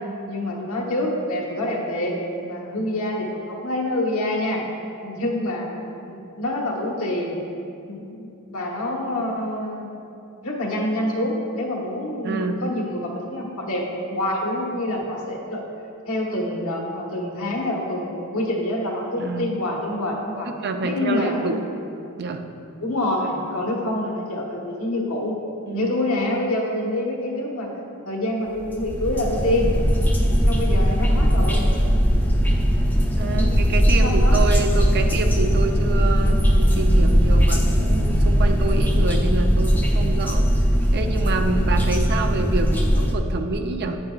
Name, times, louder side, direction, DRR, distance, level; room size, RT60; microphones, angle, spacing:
voice 1, 0.3-2.1 2.4-4.6 5.0-5.7 6.1-7.4 7.9-9.9 10.4-15.6 16.1-20.5 20.8-21.6 22.8-25.4 25.7-27.7 28.1-29.7 30.3-31.6 33.2-33.6 33.9-34.4, left 1 dB, 70° left, -1 dB, 1.2 m, -26 dB
voice 2, 12.2-12.6 19.2-19.5 20.6-21.6 22.2-22.4 25.7-25.9 33.2-40.5 40.9-44.0, right 3 dB, 45° right, 5 dB, 0.5 m, -27 dB
sound 1, 28.6-43.1, equal, 10° left, 0.6 m, -19 dB
9.6 x 8.7 x 2.4 m, 2.7 s
head